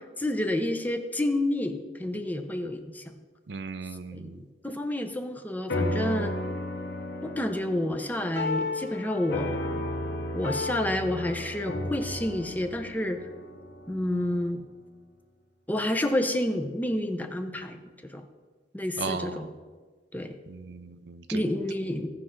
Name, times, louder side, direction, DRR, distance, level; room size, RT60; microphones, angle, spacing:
voice 1, 0.2-3.0 4.1-6.3 7.2-9.5 10.3-13.2 13.9-14.6 15.7-18.2 18.7-19.5 20.1-20.3 21.3-22.1, left 1 dB, 10° left, 6 dB, 0.7 m, -29 dB
voice 2, 3.5-4.4 19.0-19.5 20.5-21.4, right 4 dB, 70° right, 10 dB, 0.6 m, -36 dB
sound 1, 5.7-14.4, left 2 dB, 65° left, 0.9 m, -33 dB
16.5 x 5.6 x 3.7 m, 1.4 s
head